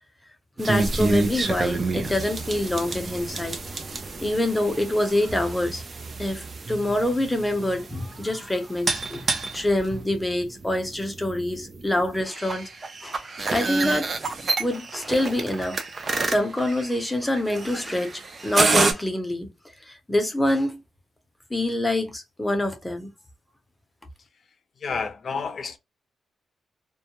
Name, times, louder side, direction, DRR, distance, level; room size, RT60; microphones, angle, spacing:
voice 1, 0.6-3.6 4.2-5.8 6.2-12.7 13.0-14.1 14.6-15.8 16.3-19.5 19.8-20.8 21.5-23.1, left 1 dB, 10° left, 0.7 m, -26 dB
sound 1, 0.6-18.9, right 3 dB, 40° right, 0.5 m, -29 dB
voice 2, 24.8-25.8, left 5 dB, 50° left, 0.6 m, -30 dB
2.2 x 2.1 x 2.9 m
cardioid pair, 100°, 0 cm